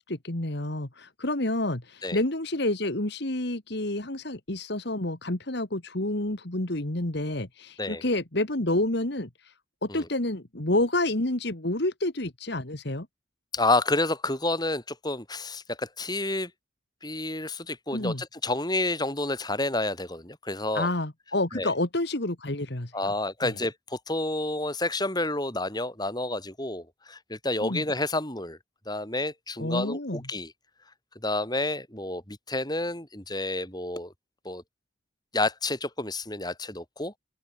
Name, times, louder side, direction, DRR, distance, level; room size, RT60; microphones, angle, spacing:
voice 1, 0.0-9.5 9.8-13.1 17.9-18.2 20.7-23.1 23.4-23.6 27.6-27.8 29.6-30.3, left 1 dB, 55° left, 2.1 m, -29 dB
voice 2, 13.5-16.5 17.0-20.9 21.5-21.7 22.9-28.6 28.9-30.5 31.2-34.1 34.4-34.6 35.3-37.2, left 2 dB, 20° left, 5.9 m, -29 dB
open air
head